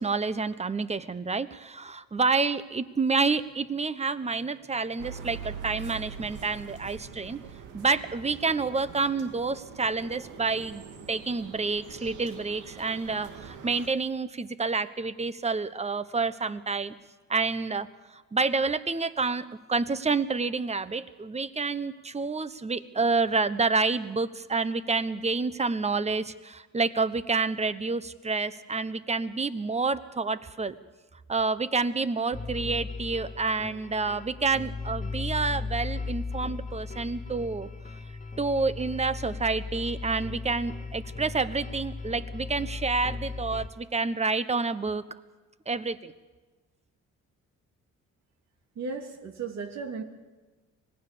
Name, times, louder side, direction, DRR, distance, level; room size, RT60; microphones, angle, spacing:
voice 1, 0.0-7.4 7.7-16.9 17.3-17.9 18.3-30.7 31.3-37.7 38.4-45.0 45.7-46.1, right 4 dB, 20° right, 14 dB, 1.1 m, -28 dB
sound 1, 5.0-13.9, right 6 dB, 85° right, 2.1 m, -43 dB
sound 2, 32.3-43.7, left 4 dB, 25° left, 2.0 m, -37 dB
voice 2, 48.7-50.0, right 4 dB, 60° right, 4 dB, 2.8 m, -35 dB
25.5 x 19.5 x 6.9 m, 1.3 s
cardioid pair, 90°, 30 cm